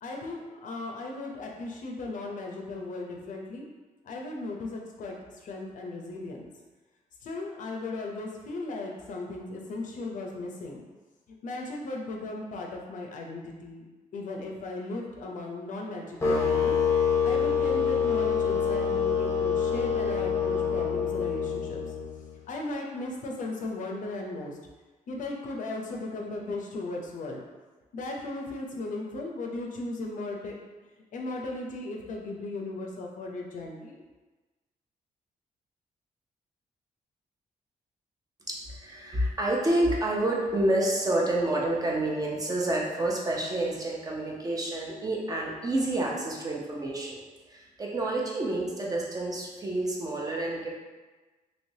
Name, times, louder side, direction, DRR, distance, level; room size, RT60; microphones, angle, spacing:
voice 1, 0.0-3.6 4.1-5.1 5.4-6.5 7.2-10.8 11.4-13.8 14.1-16.8 17.2-21.8 22.5-24.5 25.1-27.4 27.9-30.5 31.1-34.0, left 2 dB, 65° left, 0 dB, 0.5 m, -36 dB
sound 1, 16.2-22.3, left 6 dB, 20° left, 0.6 m, -26 dB
voice 2, 38.5-47.2 47.5-50.7, right 1 dB, 25° right, -2 dB, 0.6 m, -28 dB
3.2 x 3.0 x 2.7 m, 1.2 s
wide cardioid pair, 140°, 14 cm